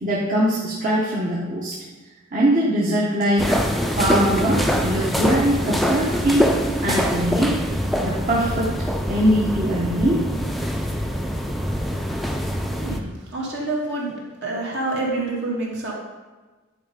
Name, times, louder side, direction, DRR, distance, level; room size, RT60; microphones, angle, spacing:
voice 1, 0.0-1.8 2.3-3.5 4.0-6.5 6.8-7.6 8.0-8.7 9.1-10.3, right 1 dB, 40° right, -7 dB, 1.5 m, -21 dB
sound 1, 3.4-13.0, equal, ahead, 0.6 m, -24 dB
voice 2, 12.7-14.1 14.4-15.9, right 2 dB, 60° right, -4 dB, 2.5 m, -27 dB
10.0 x 5.2 x 5.2 m, 1.3 s
head